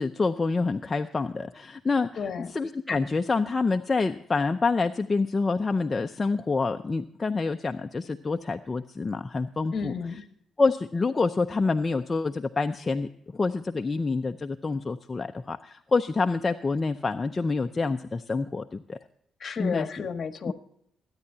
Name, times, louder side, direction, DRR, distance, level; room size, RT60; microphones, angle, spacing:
voice 1, 0.0-2.1 2.5-9.9 10.6-19.0 19.6-20.1 20.5-20.6, left 3 dB, 25° left, 6 dB, 0.6 m, -27 dB
voice 2, 2.1-2.5 9.7-10.2 19.4-20.5, left 5 dB, 45° left, 7 dB, 1.5 m, -32 dB
23.0 x 9.8 x 2.8 m, 0.72 s
cardioid pair, 90°, 0 cm